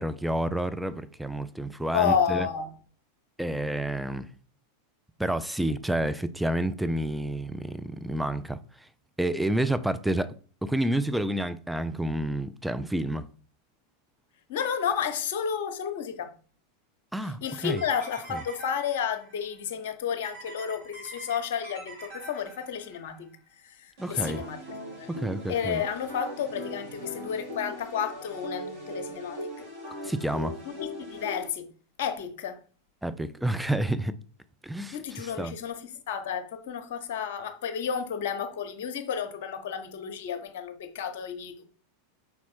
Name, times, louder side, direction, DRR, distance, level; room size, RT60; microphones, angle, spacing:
voice 1, 0.0-2.5 3.4-4.3 5.2-8.6 9.2-10.3 10.6-13.2 17.1-17.8 24.0-24.4 25.1-25.8 30.0-30.6 33.0-34.1 34.6-35.5, right 1 dB, 5° right, 0.4 m, -29 dB
voice 2, 1.9-2.7 14.5-16.3 17.4-23.3 23.8-24.6 25.0-25.1 25.5-29.5 31.0-31.7 32.0-32.6 34.9-41.6, left 7 dB, 55° left, 0.9 m, -31 dB
sound 1, 17.4-19.4 20.2-23.0 24.0-31.5, equal, 60° right, 3.3 m, -41 dB
5.6 x 4.2 x 4.3 m
figure-of-eight pair, 90°, 0 cm